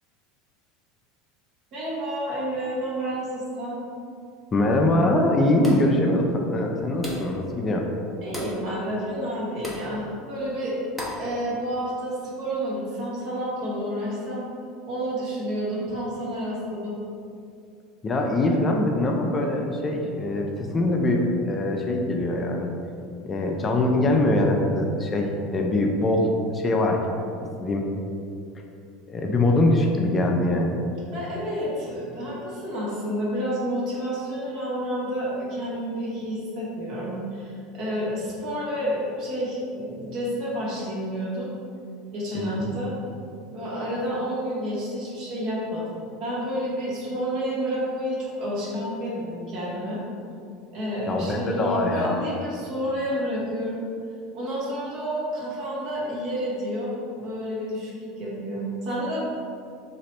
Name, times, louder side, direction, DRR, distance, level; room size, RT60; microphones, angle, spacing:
voice 1, 1.7-3.8 8.2-10.8 11.2-14.5 14.9-17.0 31.1-41.5 42.1-42.9 43.5-50.0 50.7-53.8 54.3-59.2, equal, 55° right, -6 dB, 1.4 m, -30 dB
voice 2, 4.5-7.9 18.0-22.7 23.2-27.0 27.4-27.9 29.1-30.8 42.3-42.7 51.1-52.2, left 1 dB, 30° left, 1 dB, 0.5 m, -23 dB
sound 1, 5.6-6.0 7.0-7.4 8.3-8.6 9.6-9.9 11.0-11.3, left 1 dB, 10° right, 0.9 m, -35 dB
3.1 x 2.9 x 4.3 m, 2.5 s
hypercardioid pair, 80°, 0 cm